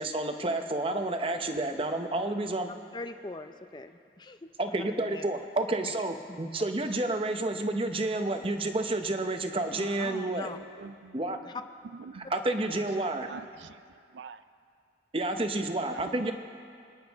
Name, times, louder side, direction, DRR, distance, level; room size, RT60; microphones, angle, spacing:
voice 1, 0.0-2.7 4.6-10.5 11.1-11.4 12.3-13.3 15.1-16.3, right 2 dB, 30° right, 0.8 m, -30 dB
voice 2, 2.7-4.8 5.1-5.3 5.8-6.0 6.3-6.4 9.7-10.6 11.4-11.6 13.0-13.1, left 3 dB, 25° left, 0.5 m, -42 dB
voice 3, 10.8-11.4 11.9-12.3 13.3-13.8 14.1-14.4 15.9-16.3, right 5 dB, 80° right, 0.4 m, -44 dB
26.5 x 10.0 x 3.5 m
head